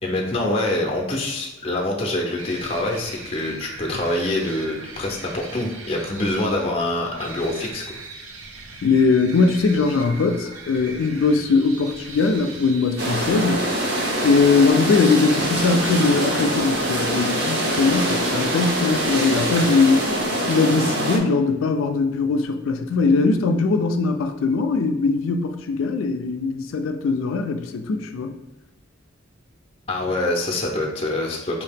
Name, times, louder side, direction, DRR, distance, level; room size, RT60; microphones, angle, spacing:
voice 1, 0.0-7.8 29.9-31.6, left 1 dB, 30° left, -1 dB, 0.6 m, -25 dB
sound 1, 2.4-20.3, right 3 dB, 85° right, 0.7 m, -39 dB
voice 2, 8.8-13.7 14.2-20.2 20.5-28.3, left 4 dB, 85° left, 6 dB, 0.4 m, -20 dB
sound 2, 13.0-21.2, right 1 dB, 55° right, 0.8 m, -24 dB
5.0 x 2.8 x 3.4 m, 1.0 s
head